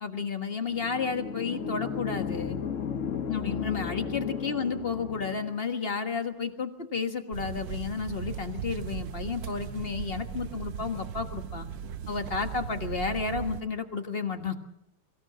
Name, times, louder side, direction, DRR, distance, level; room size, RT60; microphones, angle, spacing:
voice 1, 0.0-2.5 3.3-11.7 12.1-14.5, left 5 dB, 30° left, 7 dB, 1.6 m, -32 dB
sound 1, 0.7-5.7, left 7 dB, 50° left, 1.2 m, -34 dB
sound 2, 7.3-13.6, right 8 dB, 70° right, 1.6 m, -37 dB
23.5 x 16.0 x 7.4 m, 0.83 s
omnidirectional pair, 2.1 m